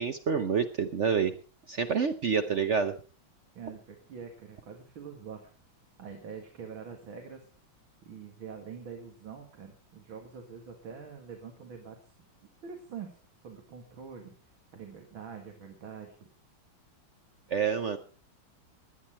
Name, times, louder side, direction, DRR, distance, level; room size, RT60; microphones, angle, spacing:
voice 1, 0.0-1.4 1.7-3.0 17.5-18.0, right 6 dB, 65° right, 9 dB, 0.7 m, -28 dB
voice 2, 3.5-5.5 6.0-7.5 8.0-12.1 12.6-14.3 14.7-16.3, right 6 dB, 80° right, 2 dB, 2.8 m, -45 dB
18.0 x 10.5 x 4.4 m, 0.39 s
omnidirectional pair, 2.2 m